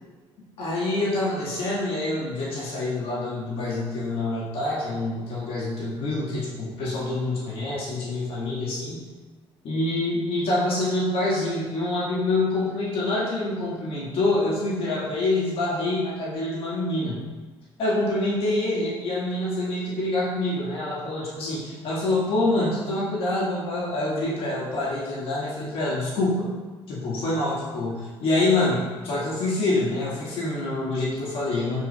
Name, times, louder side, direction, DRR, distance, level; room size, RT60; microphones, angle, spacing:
voice 1, 0.6-9.0 9.6-17.2 17.8-26.5 26.9-31.8, left 2 dB, 65° left, -6 dB, 1.8 m, -26 dB
7.5 x 4.2 x 4.2 m, 1.3 s
cardioid pair, 115°, 10 cm